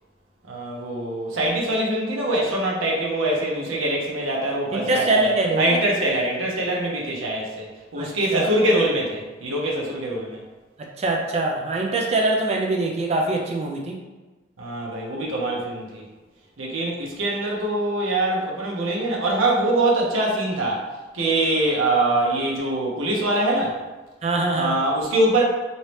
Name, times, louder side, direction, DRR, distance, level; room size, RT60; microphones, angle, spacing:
voice 1, 0.5-10.4 14.6-16.0 16.6-20.8 21.1-23.8 24.5-25.4, right 1 dB, 90° right, -2 dB, 0.8 m, -23 dB
voice 2, 4.7-5.8 8.0-8.5 10.8-14.0 24.2-24.8, right 2 dB, 30° right, 0 dB, 0.4 m, -23 dB
3.0 x 2.7 x 3.1 m, 1.2 s
head